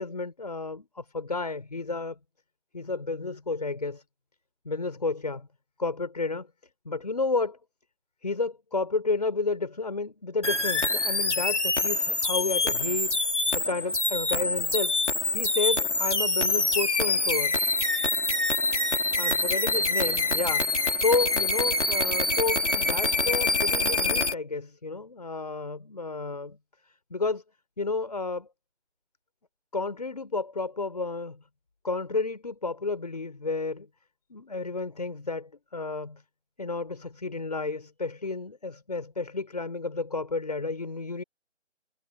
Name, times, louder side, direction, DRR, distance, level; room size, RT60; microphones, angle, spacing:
voice 1, 0.0-2.2 2.7-4.0 4.6-5.5 5.8-6.5 6.9-7.6 8.2-15.0 15.3-17.7 19.2-26.6 27.1-27.4 27.8-28.5 29.7-31.4 31.8-33.9 34.3-36.2 36.6-41.2, left 3 dB, 35° left, 5.5 m, -31 dB
sound 1, 10.4-24.3, left 2 dB, 70° left, 3.2 m, -25 dB
figure-of-eight pair, 170°, 36 cm